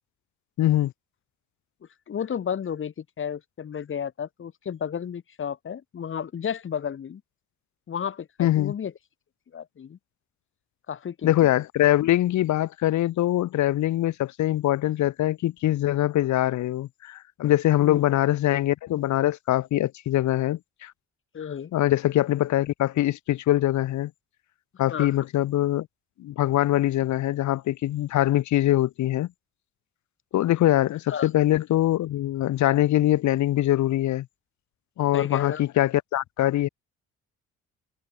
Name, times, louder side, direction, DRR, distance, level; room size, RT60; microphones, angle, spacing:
voice 1, 0.6-0.9 8.4-8.7 11.2-20.9 21.7-24.1 24.8-25.9 26.2-29.3 30.3-34.3 35.0-36.7, left 14 dB, 70° left, 0.9 m, -23 dB
voice 2, 2.1-7.2 7.9-8.9 9.5-10.0 10.9-11.3 17.8-18.0 21.3-21.7 24.9-25.2 31.1-31.3 35.1-35.6, left 8 dB, 40° left, 1.1 m, -32 dB
cardioid pair, 90°, 30 cm